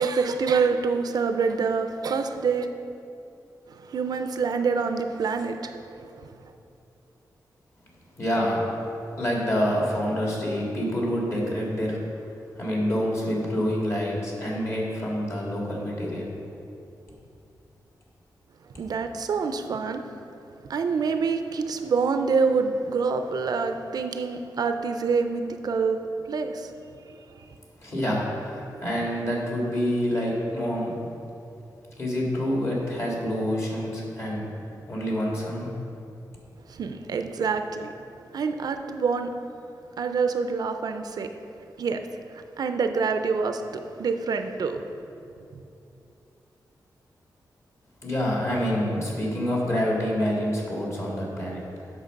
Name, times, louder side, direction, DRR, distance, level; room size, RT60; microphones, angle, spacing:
voice 1, 0.0-2.7 3.7-6.5 18.8-20.1 20.7-26.0 26.3-26.7 27.1-27.5 36.7-37.9 38.3-39.3 40.0-41.3 41.8-44.8 45.5-45.6, right 5 dB, 65° right, 7 dB, 0.5 m, -26 dB
voice 2, 8.2-8.7 9.2-12.0 12.6-16.3 27.8-30.9 32.0-34.5 34.9-35.7 48.0-51.6, equal, 40° left, -3 dB, 2.0 m, -27 dB
8.2 x 6.5 x 5.2 m, 2.7 s
wide cardioid pair, 145°, 7 cm